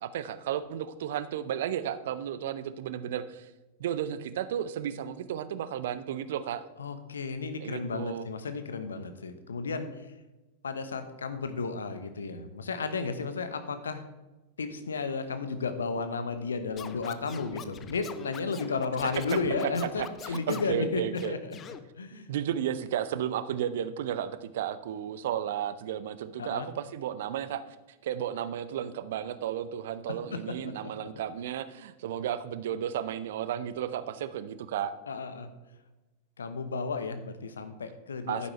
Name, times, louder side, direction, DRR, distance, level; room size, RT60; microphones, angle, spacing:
voice 1, 0.0-3.5 3.8-6.6 7.6-8.3 20.0-21.3 22.1-27.6 28.0-34.9 38.3-38.5, right 10 dB, 55° right, 13 dB, 0.6 m, -33 dB
voice 2, 6.8-10.1 10.6-14.0 14.6-21.4 22.0-22.3 26.4-26.7 30.3-30.4 30.6-31.3 35.1-35.5 36.4-38.5, left 4 dB, 70° left, 9 dB, 1.0 m, -33 dB
Scratching (performance technique), 16.8-20.8 21.2-21.8, left 8 dB, 25° left, 0.6 m, -43 dB
11.0 x 9.6 x 3.2 m, 1.1 s
figure-of-eight pair, 90°, 0 cm